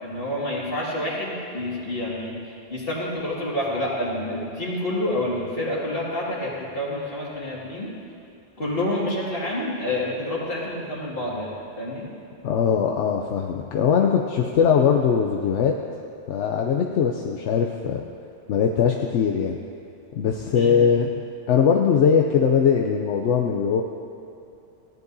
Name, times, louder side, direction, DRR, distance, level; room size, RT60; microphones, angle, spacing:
voice 1, 0.0-2.3 2.7-7.9 8.6-12.1 20.5-20.8, left 1 dB, 50° left, -5 dB, 2.3 m, -28 dB
voice 2, 12.4-15.7 16.3-18.0 18.5-19.6 20.1-21.1 21.5-23.8, left 7 dB, 80° left, 2 dB, 0.9 m, -21 dB
16.0 x 10.5 x 2.7 m, 2.7 s
omnidirectional pair, 1.2 m